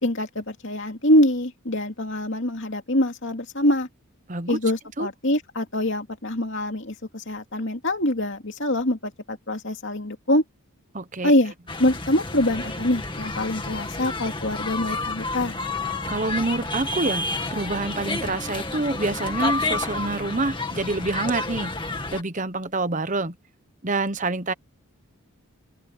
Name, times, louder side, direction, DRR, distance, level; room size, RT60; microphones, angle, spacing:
voice 1, 0.0-3.9 4.5-10.4 11.2-11.5 11.8-15.6, left 1 dB, 55° left, 2.7 m, -24 dB
voice 2, 4.3-4.6 5.0-5.1 10.9-11.3 16.1-21.7 22.1-23.4 23.8-24.5, right 2 dB, 35° right, 1.0 m, -27 dB
sound 1, 11.7-22.2, left 3 dB, 20° left, 2.3 m, -30 dB
Bowed string instrument, 16.5-21.2, equal, 5° left, 4.2 m, -44 dB
open air
head